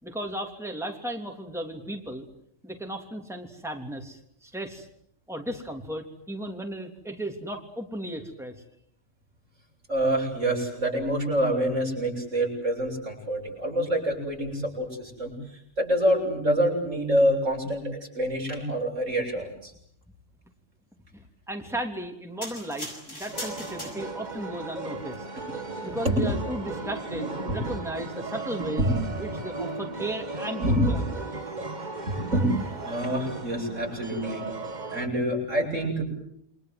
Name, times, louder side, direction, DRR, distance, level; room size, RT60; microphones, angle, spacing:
voice 1, 0.0-2.3 2.6-4.9 5.3-8.5 21.1-25.2 25.8-28.9 29.1-31.0, right 1 dB, ahead, 3 dB, 3.3 m, -35 dB
voice 2, 9.9-15.3 15.8-17.9 18.1-19.7 26.0-26.2 27.5-27.6 28.8-28.9 30.6-30.9 32.1-32.5 32.8-34.4 34.9-36.0, equal, 85° right, 0 dB, 8.3 m, -26 dB
sound 1, 22.4-24.4 25.0-25.2, left 1 dB, 80° left, 7.4 m, -39 dB
sound 2, 23.3-35.1, right 3 dB, 35° right, 2.0 m, -36 dB
29.0 x 24.5 x 7.9 m, 0.69 s
omnidirectional pair, 1.3 m